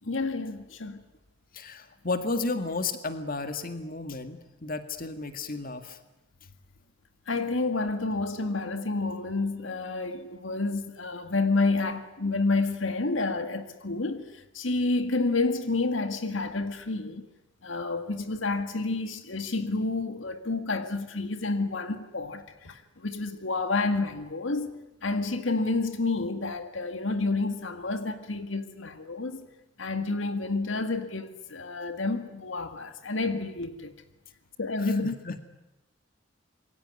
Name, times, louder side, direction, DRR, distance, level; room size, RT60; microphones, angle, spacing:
voice 1, 0.0-1.0 7.3-17.3 17.6-24.7 25.0-29.5 29.8-33.9 34.6-35.2, left 3 dB, 80° left, 1.9 m, -29 dB
voice 2, 1.5-6.0 34.8-35.4, left 3 dB, 45° left, 2.0 m, -33 dB
27.0 x 23.0 x 9.7 m
head